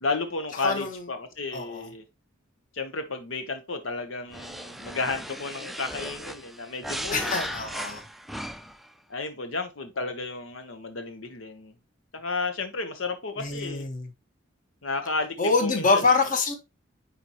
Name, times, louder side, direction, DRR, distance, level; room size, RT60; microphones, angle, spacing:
voice 1, 0.0-2.0 2.7-7.5 9.1-11.7 12.1-13.8 14.8-16.0, left 3 dB, 80° left, 1.0 m, -32 dB
voice 2, 0.6-1.0 1.5-1.9 7.1-8.0 13.4-14.1 15.4-16.5, left 4 dB, 45° left, 1.4 m, -25 dB
sound 1, 4.3-8.9, equal, ahead, 0.4 m, -37 dB
9.5 x 4.3 x 3.0 m
head